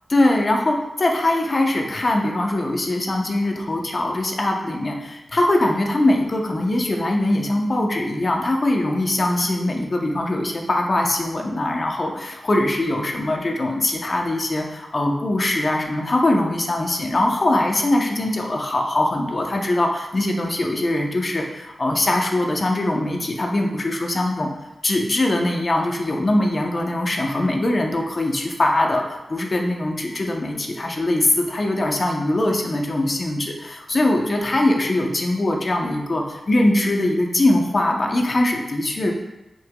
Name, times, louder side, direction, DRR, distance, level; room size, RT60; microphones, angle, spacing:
voice 1, 0.1-24.5 24.8-39.1, left 1 dB, 50° left, 1 dB, 1.1 m, -22 dB
7.7 x 5.8 x 2.4 m, 1.0 s
cardioid pair, 50°, 0 cm